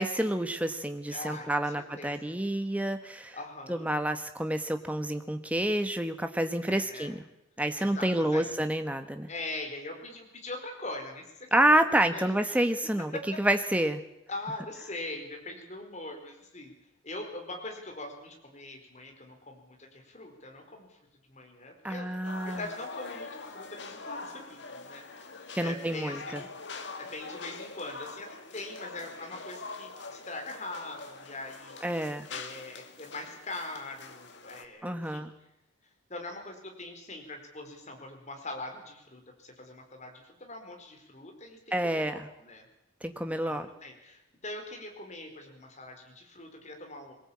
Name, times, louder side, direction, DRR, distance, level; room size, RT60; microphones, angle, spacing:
voice 1, 0.0-3.4 3.7-7.2 7.6-9.3 11.5-14.0 21.8-22.7 25.5-26.4 31.8-32.3 34.8-35.3 41.7-42.3 43.0-43.7, right 1 dB, 5° right, 7 dB, 1.4 m, -28 dB
voice 2, 1.1-2.4 3.3-4.0 6.7-7.1 7.8-8.5 9.3-11.2 11.5-12.6 13.1-13.3 14.3-16.7 17.0-21.0 21.3-25.2 25.6-26.5 27.0-28.3 28.5-31.9 32.3-35.3 36.1-42.6 43.4-47.1, left 2 dB, 35° left, 3 dB, 4.7 m, -42 dB
sound 1, 22.2-34.6, left 3 dB, 60° left, 2.1 m, -44 dB
22.0 x 18.5 x 8.8 m, 0.86 s
head